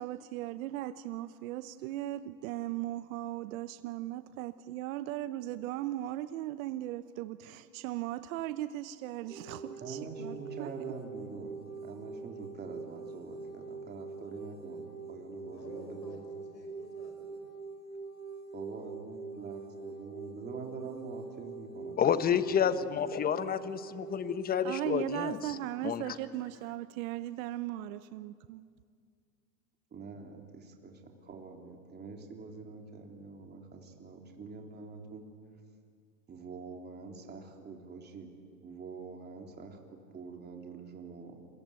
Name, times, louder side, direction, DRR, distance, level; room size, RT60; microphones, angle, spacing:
voice 1, 0.0-10.7 24.6-28.6, right 14 dB, 55° right, 13 dB, 0.9 m, -38 dB
sound 1, 9.3-24.3, right 4 dB, 80° right, 5.6 m, -44 dB
voice 2, 9.8-16.2 18.5-22.1 22.6-22.7 29.9-35.3 36.3-38.3 38.6-41.4, right 4 dB, 20° right, 2 dB, 3.6 m, -45 dB
voice 3, 15.4-17.5, left 2 dB, 90° left, 4 dB, 5.5 m, -51 dB
voice 4, 22.0-25.4 25.8-26.0, left 8 dB, 20° left, 13 dB, 1.1 m, -29 dB
27.5 x 22.5 x 9.0 m, 2.2 s
hypercardioid pair, 115°, 50 cm